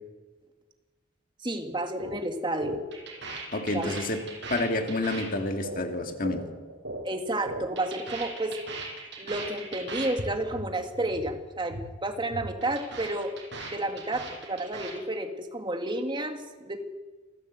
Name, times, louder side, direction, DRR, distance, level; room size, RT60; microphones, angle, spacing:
voice 1, 1.4-2.8 3.7-3.9 7.0-8.6 9.2-13.3 13.7-16.8, right 1 dB, 25° right, 6 dB, 1.8 m, -31 dB
sound 1, 2.0-2.2 2.5-7.0 7.3-10.2 10.5-10.7 10.9-11.3 11.6-11.9 12.2-14.9, right 2 dB, 60° right, 6.6 m, -38 dB
voice 2, 3.5-4.2 4.5-6.4, left 2 dB, 45° left, 5 dB, 2.1 m, -29 dB
28.5 x 14.5 x 8.2 m, 1.3 s
head